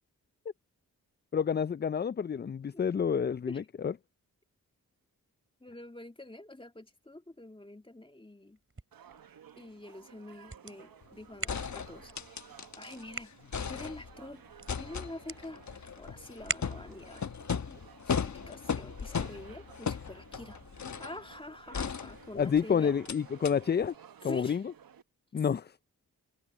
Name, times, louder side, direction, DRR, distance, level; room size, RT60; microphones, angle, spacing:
voice 1, 1.3-3.9 22.4-23.9 24.2-24.6 25.3-25.8, left 7 dB, 30° left, 0.4 m, -29 dB
voice 2, 5.6-8.6 9.6-12.1 12.8-13.4 13.7-17.3 17.7-20.6 21.0-23.0 24.2-24.6 25.4-25.5, left 1 dB, 15° left, 2.3 m, -46 dB
sound 1, 8.5-17.2, right 2 dB, 35° right, 4.4 m, -45 dB
sound 2, 8.9-25.0, right 8 dB, 70° right, 1.2 m, -55 dB
sound 3, 11.0-11.1 11.5-13.0 13.3-14.3 14.7-21.2 21.7-22.6 23.1-23.2 23.4-23.5, left 6 dB, 55° left, 1.1 m, -37 dB
cardioid pair, 45°, 36 cm